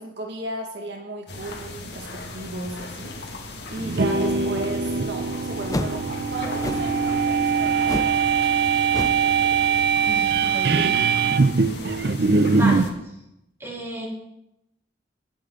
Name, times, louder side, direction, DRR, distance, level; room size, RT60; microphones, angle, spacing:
voice 1, 0.0-8.5, right 2 dB, 70° right, 1 dB, 1.9 m, -35 dB
sound 1, 1.3-12.9, left 2 dB, 65° left, 2.0 m, -38 dB
sound 2, 3.8-12.9, right 5 dB, 55° right, 0.6 m, -22 dB
sound 3, 5.7-6.0 6.6-7.0 7.9-8.2 8.5-8.6 8.9-9.3, left 2 dB, 20° left, 0.4 m, -29 dB
voice 2, 10.1-11.0 12.4-13.1 13.6-14.1, equal, 15° right, -4 dB, 3.2 m, -32 dB
20.0 x 9.0 x 3.9 m, 0.85 s
head